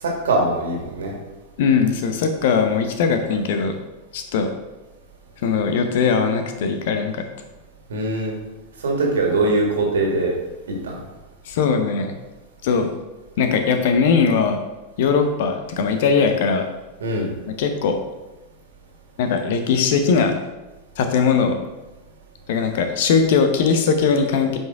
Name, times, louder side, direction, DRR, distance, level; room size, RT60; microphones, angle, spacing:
voice 1, 0.0-1.2 7.9-8.4 8.8-10.3 10.8-11.0 17.0-17.3, right 2 dB, 65° right, 0 dB, 2.0 m, -22 dB
voice 2, 1.6-3.7 4.1-4.5 5.4-7.2 11.5-12.1 12.6-12.9 13.4-14.6 15.0-16.6 17.6-18.0 19.2-20.3 21.0-21.6 22.5-24.6, left 5 dB, 55° left, 6 dB, 0.9 m, -20 dB
9.1 x 5.4 x 3.7 m, 1.1 s
figure-of-eight pair, 90°, 0 cm